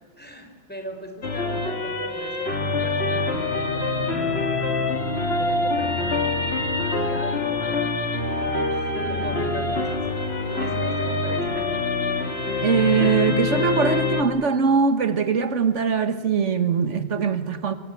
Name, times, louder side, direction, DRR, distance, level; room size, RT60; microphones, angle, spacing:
voice 1, 0.2-4.4 5.4-10.2 10.5-11.7, equal, 10° left, 4.4 m, -39 dB
sound 1, 1.2-14.2, left 3 dB, 55° left, 2.5 m, -25 dB
voice 2, 12.6-17.7, right 5 dB, 80° right, 1.6 m, -21 dB
25.0 x 24.5 x 9.2 m
omnidirectional pair, 1.2 m